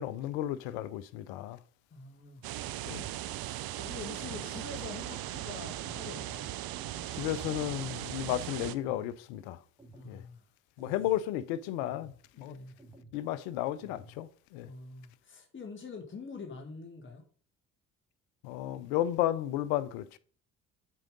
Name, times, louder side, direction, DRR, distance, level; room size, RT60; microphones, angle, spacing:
voice 1, 0.0-1.6 2.9-3.0 7.1-9.6 10.1-10.2 10.8-12.5 13.1-14.7 18.4-20.2, left 13 dB, 75° left, 0.7 m, -33 dB
voice 2, 1.9-2.4 2.9-6.5 9.9-10.4 12.3-12.8 14.6-17.2, left 4 dB, 30° left, 1.6 m, -46 dB
sound 1, 2.4-8.7, right 14 dB, 60° right, 0.7 m, -38 dB
sound 2, 5.8-6.2 6.8-7.2 7.8-8.2 8.8-9.2 9.8-10.2 10.8-11.2 11.8-12.2 12.8-13.2 13.8-14.2, right 1 dB, 10° right, 2.2 m, -54 dB
7.5 x 4.6 x 5.1 m
hypercardioid pair, 50°, 42 cm